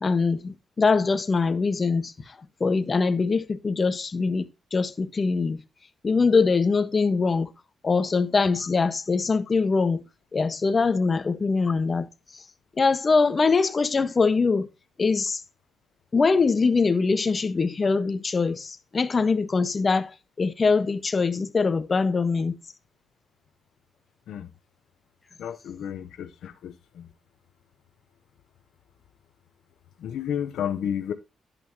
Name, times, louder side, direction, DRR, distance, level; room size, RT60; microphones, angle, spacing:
voice 1, 0.0-2.1 2.6-4.5 4.7-5.6 6.0-7.5 7.8-10.0 10.3-12.1 12.3-12.4 12.8-14.7 15.0-15.4 16.1-22.6, left 4 dB, 35° left, 1.5 m, -23 dB
voice 2, 25.4-27.1 30.0-31.1, left 9 dB, 80° left, 1.0 m, -32 dB
11.0 x 8.4 x 3.0 m
cardioid pair, 75°, 0 cm